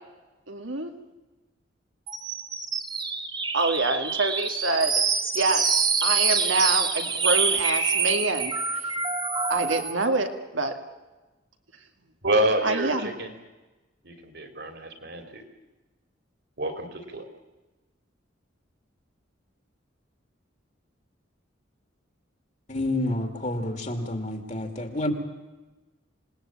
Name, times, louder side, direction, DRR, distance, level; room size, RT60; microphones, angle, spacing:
voice 1, 0.5-0.9 3.5-5.0 5.3-9.0 9.5-10.7 12.6-13.1, right 3 dB, 80° right, 5 dB, 2.2 m, -26 dB
sound 1, 2.1-10.1, right 5 dB, 25° right, 2.0 m, -26 dB
voice 2, 12.2-13.3 14.0-15.4 16.6-17.3, right 1 dB, 55° right, 7 dB, 3.3 m, -28 dB
voice 3, 22.7-25.1, left 1 dB, 35° left, 6 dB, 2.6 m, -29 dB
27.0 x 19.0 x 8.8 m, 1.2 s
head